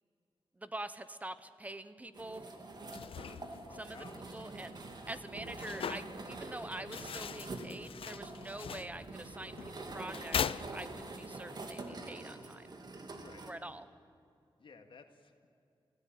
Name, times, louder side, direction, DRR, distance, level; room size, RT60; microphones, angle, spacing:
voice 1, 0.6-2.5 3.7-4.0 4.3-4.8 5.1-12.7 13.5-13.9, right 1 dB, 15° right, 12 dB, 0.9 m, -45 dB
sound 1, 2.1-13.5, right 2 dB, 50° right, 2.4 m, -46 dB
sound 2, 2.8-11.3, left 8 dB, 85° left, 0.5 m, -42 dB
voice 2, 3.6-4.5 13.1-13.5 14.6-15.3, left 4 dB, 70° left, 5 dB, 2.2 m, -55 dB
30.0 x 16.5 x 9.3 m, 2.5 s
wide cardioid pair, 160°, 9 cm